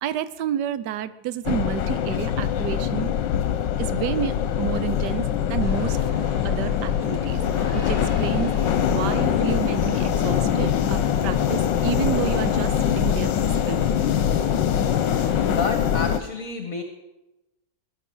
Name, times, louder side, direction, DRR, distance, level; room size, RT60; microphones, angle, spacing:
voice 1, 0.0-3.1 3.8-6.0 6.4-7.4 7.7-8.5 8.9-13.9, right 10 dB, 70° right, 14 dB, 1.3 m, -30 dB
sound 1, 1.4-16.2, left 9 dB, 75° left, 1.4 m, -23 dB
sound 2, 5.6-15.5, left 3 dB, 30° left, 5.5 m, -37 dB
voice 2, 15.5-16.8, left 4 dB, 50° left, 5 dB, 1.7 m, -29 dB
19.5 x 11.0 x 6.2 m, 0.98 s
omnidirectional pair, 2.0 m